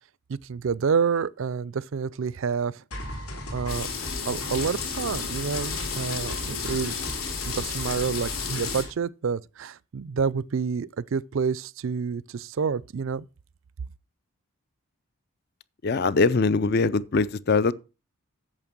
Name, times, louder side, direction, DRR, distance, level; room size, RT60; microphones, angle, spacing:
voice 1, 0.3-2.8 3.1-3.2 3.5-3.9 4.3-6.9 7.5-13.3, right 6 dB, 60° right, 0.4 m, -28 dB
sound 1, 2.9-8.9, left 1 dB, 90° left, 3.4 m, -39 dB
Oxford Rain, 3.7-8.8, left 5 dB, 75° left, 3.4 m, -32 dB
voice 2, 15.8-17.7, left 4 dB, 45° left, 0.5 m, -22 dB
8.9 x 6.6 x 5.9 m
head